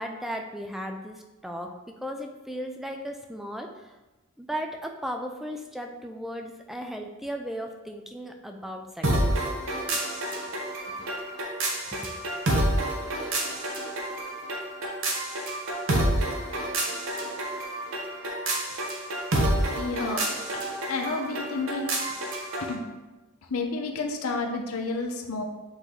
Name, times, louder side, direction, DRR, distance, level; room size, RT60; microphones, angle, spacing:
voice 1, 0.0-1.7 2.0-3.9 4.4-9.4 11.0-11.1 11.9-12.1, equal, ahead, 3 dB, 0.4 m, -36 dB
sound 1, 9.0-22.7, right 1 dB, 65° right, 1.1 m, -29 dB
voice 2, 19.7-20.2 20.9-21.9 22.6-22.8 23.5-25.4, left 3 dB, 90° left, 3 dB, 0.7 m, -30 dB
7.8 x 3.0 x 4.0 m, 1.1 s
head